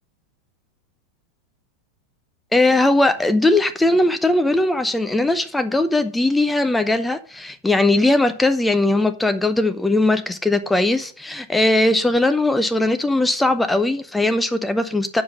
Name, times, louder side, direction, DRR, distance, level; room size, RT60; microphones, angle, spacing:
voice 1, 2.5-15.2, left 2 dB, 5° left, 0.6 m, -19 dB
7.0 x 5.2 x 6.6 m
figure-of-eight pair, 90°, 0 cm